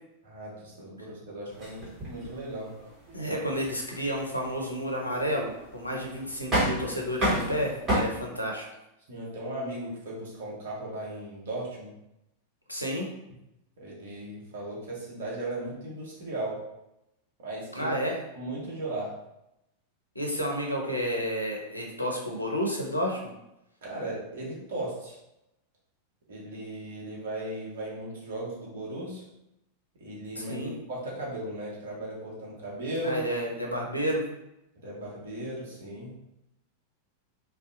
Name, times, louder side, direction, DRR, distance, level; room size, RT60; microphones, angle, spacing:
voice 1, 0.2-2.7 3.2-3.5 9.1-11.9 13.8-16.6 17.4-17.9 18.3-19.2 23.8-25.2 26.3-29.2 30.0-33.2 34.8-36.1, right 1 dB, 60° right, -4 dB, 0.9 m, -36 dB
sound 1, 1.5-8.0, right 1 dB, 25° right, 1.2 m, -32 dB
voice 2, 3.1-8.7 12.7-13.1 17.7-18.2 20.2-23.3 30.3-30.7 33.0-34.2, equal, 85° left, -1 dB, 0.5 m, -31 dB
2.6 x 2.2 x 2.5 m, 0.87 s
figure-of-eight pair, 90°, 0 cm